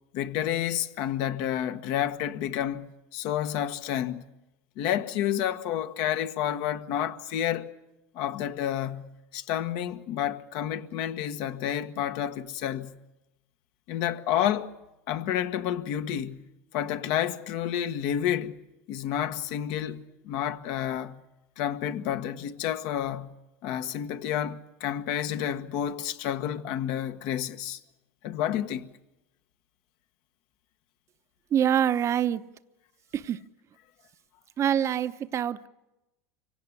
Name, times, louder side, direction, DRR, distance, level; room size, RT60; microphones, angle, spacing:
voice 1, 0.1-4.3 4.8-7.7 8.1-13.0 13.9-14.8 15.1-16.5 16.7-18.6 18.9-21.2 21.6-23.3 23.6-27.8 28.2-28.9, left 10 dB, 60° left, 1.3 m, -30 dB
voice 2, 31.5-32.5 33.1-33.4 34.6-35.7, right 9 dB, 35° right, 0.8 m, -25 dB
24.5 x 17.5 x 9.8 m
supercardioid pair, 105°, 8 cm